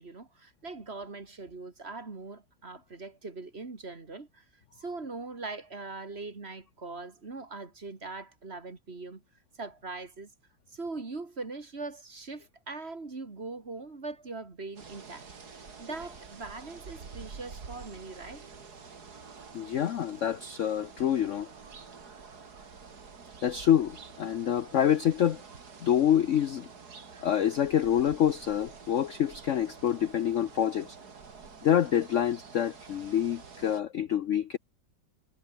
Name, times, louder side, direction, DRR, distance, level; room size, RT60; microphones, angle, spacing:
voice 1, 0.0-4.4 4.8-9.2 9.6-10.3 10.7-15.3 15.5-18.4, right 3 dB, 35° right, 2.5 m, -41 dB
sound 1, 14.8-33.8, right 5 dB, 60° right, 3.0 m, -48 dB
voice 2, 19.5-21.5 23.4-25.4 25.8-26.7 27.2-31.0 31.6-34.6, left 10 dB, 60° left, 0.8 m, -26 dB
omnidirectional pair, 1.9 m